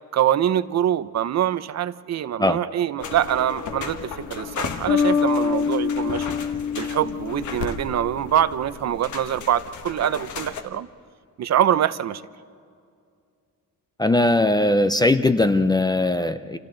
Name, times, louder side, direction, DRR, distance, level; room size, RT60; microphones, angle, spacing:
voice 1, 0.1-6.3 6.8-10.9 11.4-12.2, right 10 dB, 55° right, 14 dB, 0.6 m, -24 dB
sound 1, 3.0-10.6, left 6 dB, 60° left, 1.4 m, -35 dB
Bass guitar, 4.9-8.4, left 5 dB, 45° left, 0.9 m, -25 dB
voice 2, 14.0-16.6, left 2 dB, 10° left, 10 dB, 0.4 m, -19 dB
30.0 x 28.0 x 3.9 m, 2.3 s
wide cardioid pair, 175°, 33 cm